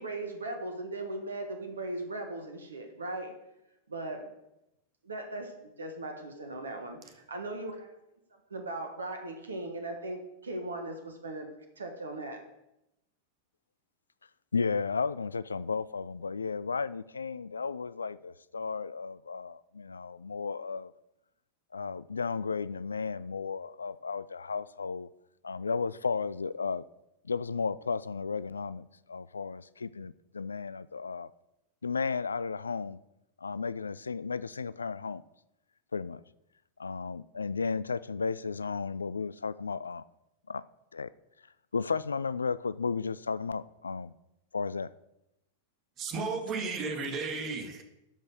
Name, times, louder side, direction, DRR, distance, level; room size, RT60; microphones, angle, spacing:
voice 1, 0.0-3.4 3.9-4.3 5.0-7.9 8.5-11.5 11.8-12.5, right 2 dB, 70° right, 1.4 m, -38 dB
voice 2, 14.5-20.9 21.7-25.1 25.4-26.8 27.2-31.3 31.8-33.0 33.4-35.2 35.9-36.2 36.8-40.0 40.5-40.6 40.9-41.1 41.7-44.1 44.5-44.9 47.0-47.1, left 5 dB, 75° left, 0.3 m, -34 dB
voice 3, 46.0-47.8, right 4 dB, 35° right, 1.8 m, -34 dB
12.5 x 5.4 x 6.3 m
figure-of-eight pair, 90°, 0 cm